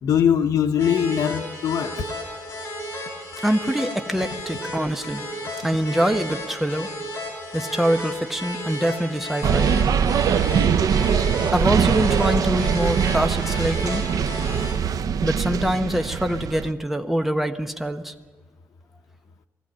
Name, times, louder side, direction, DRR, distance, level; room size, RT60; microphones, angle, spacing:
voice 1, 0.0-2.1, left 8 dB, 85° left, 0.8 m, -21 dB
sound 1, 0.8-14.7, equal, 40° left, 7.9 m, -33 dB
voice 2, 3.4-5.3 5.6-6.9 7.5-9.7 11.5-14.0 15.2-18.1, equal, 5° right, 1.1 m, -24 dB
sound 2, 9.4-16.7, right 7 dB, 80° right, 0.7 m, -22 dB
20.5 x 15.5 x 8.7 m
wide cardioid pair, 120°, 6 cm